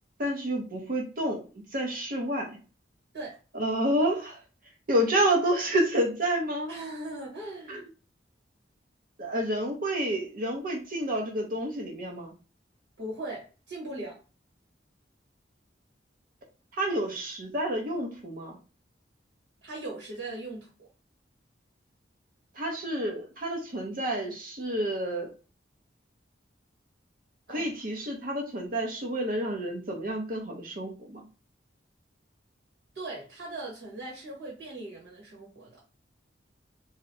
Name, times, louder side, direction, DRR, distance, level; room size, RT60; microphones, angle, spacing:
voice 1, 0.2-1.4 1.7-2.6 3.5-4.4 4.9-6.7 7.7-7.8 9.2-12.3 16.8-18.6 22.5-25.3 27.5-31.2, right 1 dB, 50° right, 0 dB, 0.7 m, -29 dB
voice 2, 6.7-7.8 13.0-14.2 19.6-20.9 27.5-27.7 32.9-35.8, right 2 dB, 75° right, -3 dB, 1.2 m, -39 dB
4.1 x 2.0 x 2.6 m, 0.33 s
head